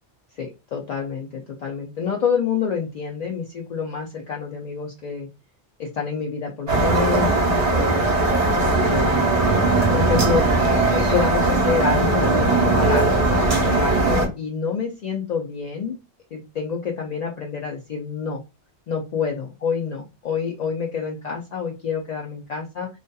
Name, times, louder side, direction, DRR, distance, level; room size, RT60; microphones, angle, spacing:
voice 1, 0.4-5.3 5.8-10.5 10.9-15.9 16.3-18.4 18.9-22.9, left 6 dB, 60° left, 0 dB, 0.4 m, -28 dB
sound 1, 6.7-14.3, right 2 dB, 40° right, 0.6 m, -19 dB
2.6 x 2.3 x 2.2 m, 0.26 s
omnidirectional pair, 1.2 m